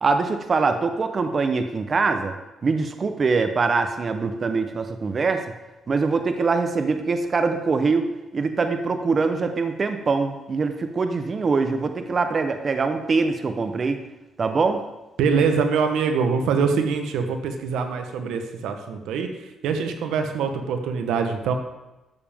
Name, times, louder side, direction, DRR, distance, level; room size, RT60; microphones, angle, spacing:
voice 1, 0.0-2.3 2.6-5.5 5.9-14.0 14.4-14.8, right 4 dB, 40° right, 7 dB, 0.8 m, -23 dB
voice 2, 15.2-21.5, right 5 dB, 85° right, 6 dB, 1.0 m, -24 dB
12.0 x 7.3 x 3.5 m, 1.0 s
cardioid pair, 90°, 0 cm